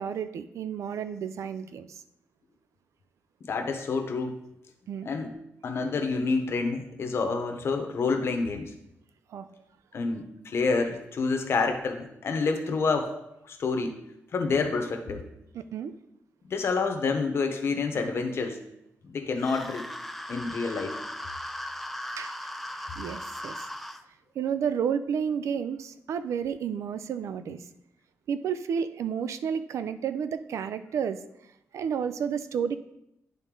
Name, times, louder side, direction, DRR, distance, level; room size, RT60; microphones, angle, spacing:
voice 1, 0.0-2.0 4.9-5.1 9.3-9.6 15.5-15.9 22.2-22.3 23.0-23.7 24.4-27.6 28.3-31.2 31.7-32.7, right 7 dB, 85° right, 12 dB, 0.4 m, -31 dB
voice 2, 3.4-4.4 5.0-5.3 5.6-8.7 9.9-13.2 13.4-14.0 14.3-15.3 16.5-18.6 19.0-19.9 20.3-21.0, left 4 dB, 55° left, 5 dB, 0.9 m, -28 dB
sound 1, 19.4-24.0, left 1 dB, ahead, 0.4 m, -38 dB
10.5 x 3.8 x 3.7 m, 0.83 s
wide cardioid pair, 145°, 5 cm